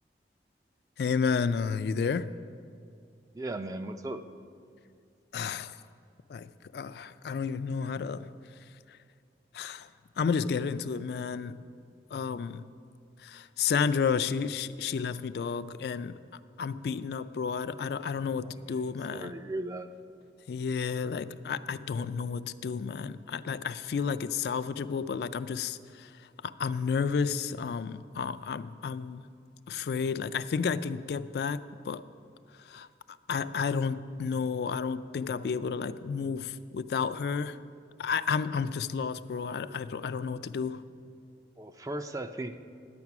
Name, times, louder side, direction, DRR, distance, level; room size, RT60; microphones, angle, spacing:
voice 1, 1.0-2.3 5.3-5.8 6.3-8.3 8.9-9.0 9.5-9.9 10.2-11.6 12.1-12.7 13.2-19.3 20.5-29.2 29.7-32.0 32.6-32.9 33.3-37.6 38.0-40.8, left 6 dB, 65° left, 13 dB, 0.3 m, -31 dB
voice 2, 3.3-4.2 18.3-18.8 19.1-19.9 41.6-42.6, right 1 dB, 20° right, 9 dB, 0.4 m, -37 dB
10.5 x 8.2 x 5.9 m, 2.3 s
head